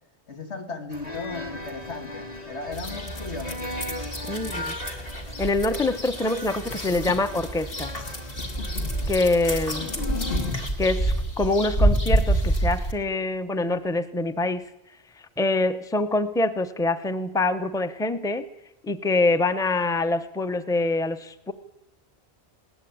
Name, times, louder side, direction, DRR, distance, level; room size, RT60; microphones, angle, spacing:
voice 1, 0.3-3.7 9.8-10.0, left 3 dB, 85° left, 5 dB, 2.5 m, -36 dB
sound 1, 0.9-10.7, left 1 dB, 35° left, 2.3 m, -38 dB
sound 2, 2.7-12.9, right 1 dB, 55° left, 2.6 m, -28 dB
voice 2, 4.3-4.7 5.4-7.9 9.1-9.9 10.8-14.6 15.4-18.5 18.8-21.5, left 2 dB, 5° left, 10 dB, 0.8 m, -25 dB
20.0 x 18.5 x 8.8 m, 0.86 s
omnidirectional pair, 1.1 m